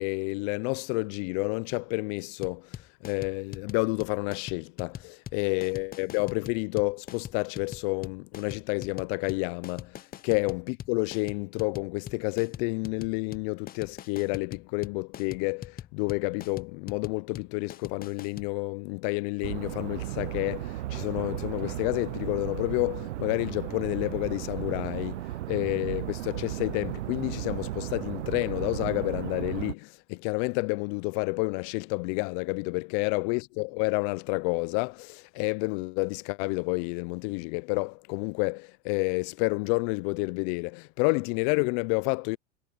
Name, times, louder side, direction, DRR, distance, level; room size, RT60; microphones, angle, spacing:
voice 1, 0.0-42.4, left 33 dB, 45° left, 0.5 m, -30 dB
sound 1, 2.4-18.5, left 11 dB, 25° left, 0.8 m, -42 dB
sound 2, 19.4-29.7, right 15 dB, 80° right, 0.7 m, -35 dB
hypercardioid pair, 105°, 35 cm